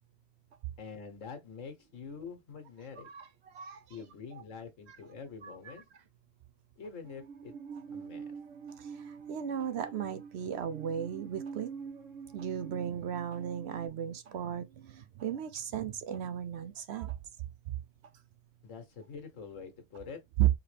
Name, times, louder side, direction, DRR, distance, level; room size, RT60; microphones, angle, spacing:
voice 1, 0.8-3.1 3.9-5.9 6.8-7.5 7.9-8.4 18.6-20.2, left 5 dB, 80° left, 1.6 m, -46 dB
voice 2, 5.4-5.7 9.3-11.7 12.3-17.1 20.4-20.5, right 10 dB, 65° right, 0.8 m, -35 dB
Musical instrument, 7.0-13.9, right 6 dB, 80° right, 1.2 m, -46 dB
4.8 x 3.0 x 3.2 m
omnidirectional pair, 1.3 m